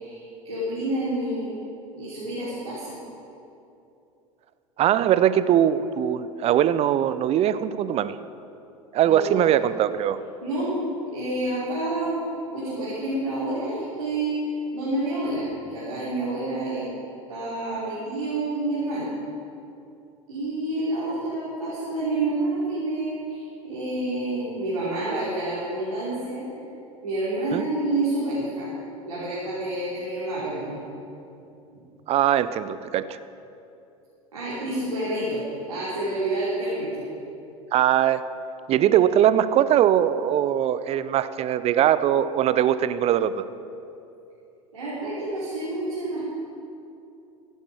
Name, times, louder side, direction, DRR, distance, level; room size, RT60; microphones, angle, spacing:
voice 1, 0.0-1.5 1.9-2.9 9.0-9.5 10.4-12.2 12.5-16.9 17.3-19.1 20.3-26.5 27.0-28.7 29.0-30.8 34.3-35.4 35.7-37.0 44.7-46.3, right 2 dB, 85° right, -9 dB, 3.4 m, -28 dB
voice 2, 4.8-8.2 8.9-10.2 27.5-27.6 32.1-33.2 37.7-38.3 38.7-43.5, right 10 dB, 35° right, 14 dB, 0.6 m, -21 dB
15.5 x 11.0 x 4.9 m, 2.7 s
figure-of-eight pair, 80°, 18 cm